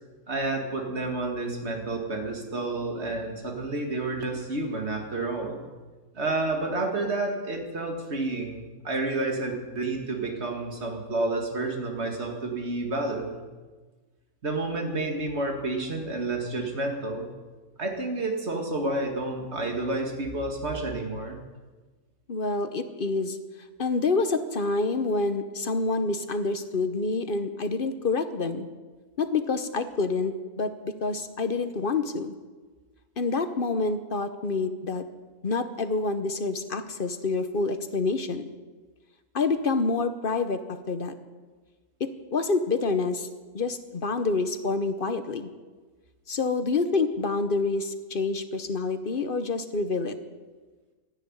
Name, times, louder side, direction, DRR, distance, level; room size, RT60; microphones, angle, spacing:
voice 1, 0.3-5.6 6.1-13.4 14.4-17.3 17.8-21.4, right 2 dB, 45° right, 2 dB, 2.4 m, -30 dB
voice 2, 22.3-23.4 23.8-28.7 29.2-32.3 33.2-35.0 35.4-38.5 39.3-41.1 42.0-43.3 43.5-45.5 46.3-50.2, left 3 dB, 40° left, 9 dB, 0.9 m, -27 dB
12.5 x 10.0 x 9.8 m, 1.3 s
omnidirectional pair, 1.6 m